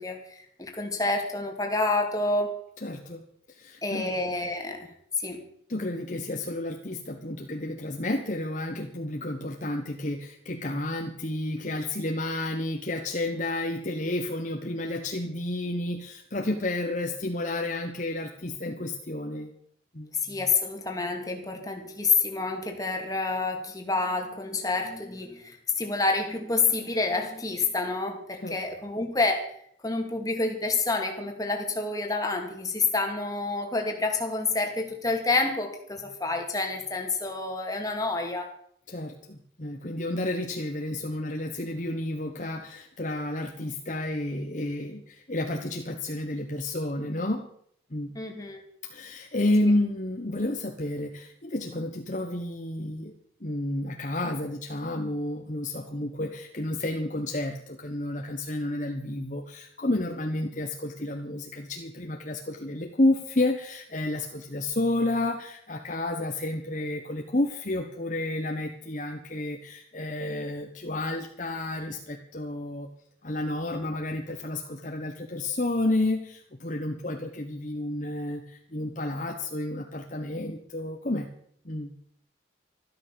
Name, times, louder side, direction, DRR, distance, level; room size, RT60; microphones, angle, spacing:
voice 1, 0.0-2.5 3.8-4.9 5.2-5.4 20.2-29.5 29.8-38.5 48.1-48.6, left 3 dB, 20° left, 3 dB, 2.3 m, -28 dB
voice 2, 2.8-3.2 3.5-4.2 5.7-19.5 19.9-20.1 28.4-28.6 38.9-47.4 47.9-48.1 48.9-53.1 53.4-72.9 73.2-81.3 81.6-81.9, left 1 dB, 40° left, 3 dB, 1.2 m, -31 dB
13.0 x 12.5 x 7.0 m, 0.67 s
head